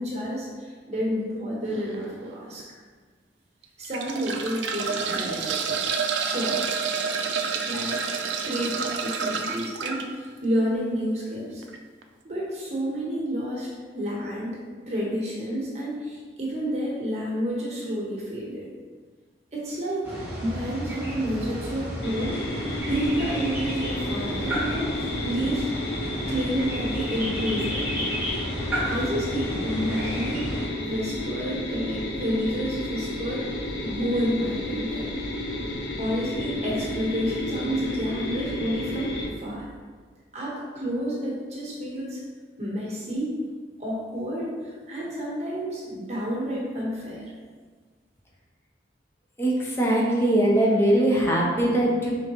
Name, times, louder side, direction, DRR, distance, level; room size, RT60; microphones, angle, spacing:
voice 1, 0.0-2.6 3.8-5.8 6.2-6.6 7.7-8.0 8.4-11.6 12.2-13.7 13.9-14.6 14.9-18.7 19.5-20.1 20.4-25.7 26.3-27.9 28.8-30.5 30.8-33.5 33.8-35.1 36.0-39.7 40.3-42.2 42.6-43.4 43.8-47.3, equal, 40° right, -5 dB, 1.1 m, -30 dB
sound 1, 1.7-2.0 2.6-2.7 3.6-10.0 11.6-11.8 12.0-12.1, right 6 dB, 85° right, 0.4 m, -29 dB
sound 2, 20.0-30.7, equal, 10° right, 1.0 m, -32 dB
sound 3, 22.0-39.3, left 1 dB, 80° left, 0.8 m, -32 dB
voice 2, 49.4-52.1, right 1 dB, 15° left, -3 dB, 0.7 m, -21 dB
4.5 x 3.7 x 3.0 m, 1.5 s
head